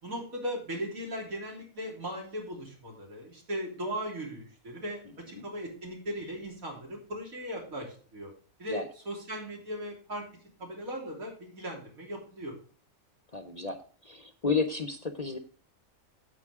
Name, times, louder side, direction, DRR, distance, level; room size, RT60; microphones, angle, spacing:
voice 1, 0.0-5.0 5.3-8.3 8.6-10.2 10.6-12.5, equal, 85° right, -1 dB, 3.7 m, -38 dB
voice 2, 13.3-13.8 14.0-15.4, left 4 dB, 35° left, 8 dB, 0.7 m, -31 dB
9.5 x 7.6 x 3.6 m, 0.41 s
omnidirectional pair, 1.4 m